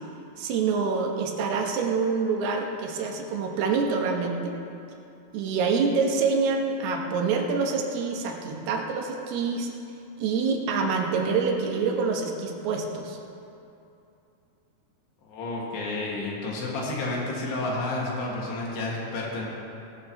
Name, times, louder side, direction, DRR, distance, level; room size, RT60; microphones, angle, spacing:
voice 1, 0.4-4.5 5.3-9.7 10.2-13.2, right 4 dB, 80° right, 1 dB, 3.1 m, -26 dB
voice 2, 15.2-19.4, left 2 dB, 90° left, -3 dB, 4.0 m, -30 dB
18.5 x 12.5 x 3.0 m, 2.7 s
omnidirectional pair, 4.6 m